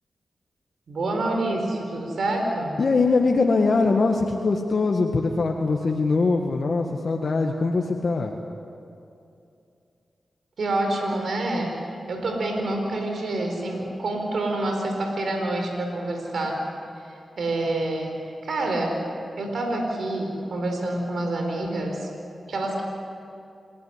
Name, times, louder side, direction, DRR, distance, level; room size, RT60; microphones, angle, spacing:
voice 1, 0.9-2.8 10.6-11.7 12.1-16.6 17.0-19.0 19.4-22.1 22.5-22.8, right 2 dB, 75° right, 2 dB, 4.4 m, -27 dB
voice 2, 2.8-8.3, left 3 dB, 60° left, 1 dB, 1.8 m, -22 dB
28.0 x 16.0 x 9.8 m, 2.6 s
cardioid pair, 55°, 0 cm